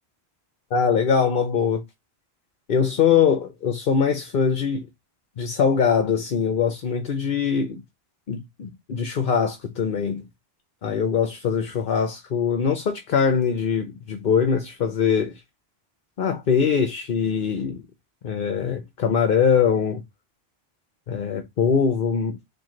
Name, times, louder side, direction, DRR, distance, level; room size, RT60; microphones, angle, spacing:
voice 1, 0.7-1.8 2.7-4.9 5.4-7.8 8.3-10.3 10.8-15.4 16.2-17.8 18.2-20.0 21.1-22.4, left 6 dB, 60° left, 0.9 m, -22 dB
4.6 x 2.6 x 3.8 m
omnidirectional pair, 1.0 m